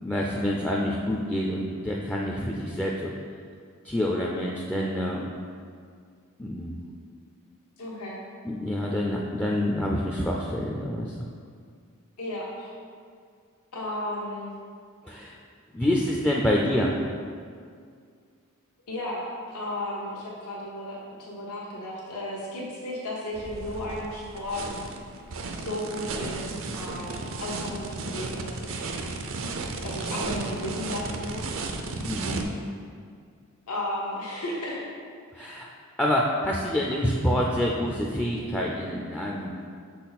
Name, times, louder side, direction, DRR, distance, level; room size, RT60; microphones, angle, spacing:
voice 1, 0.0-3.1 3.8-5.3 6.4-6.7 8.4-11.3 15.0-15.4 15.7-16.9 32.0-32.5 35.3-35.7 36.0-39.5, left 1 dB, 5° left, -3 dB, 0.4 m, -27 dB
voice 2, 7.8-8.2 12.2-12.7 13.7-14.5 16.5-16.8 18.9-24.6 25.5-29.0 29.8-31.7 33.7-34.8, left 1 dB, 85° left, -4 dB, 1.0 m, -34 dB
sound 1, 23.3-32.4, right 3 dB, 60° right, 0.5 m, -34 dB
6.2 x 4.2 x 4.0 m, 2.2 s
head